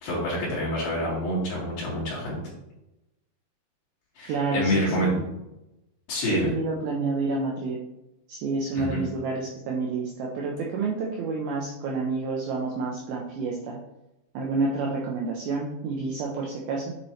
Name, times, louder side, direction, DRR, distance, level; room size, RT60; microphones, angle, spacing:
voice 1, 0.0-2.4 4.1-5.2 6.1-6.5 8.8-9.0, equal, 55° left, -12 dB, 3.3 m, -27 dB
voice 2, 4.3-5.1 6.3-7.8 8.3-13.8 14.3-16.9, right 3 dB, 90° right, -2 dB, 2.2 m, -29 dB
9.1 x 3.1 x 4.2 m, 0.92 s
omnidirectional pair, 5.3 m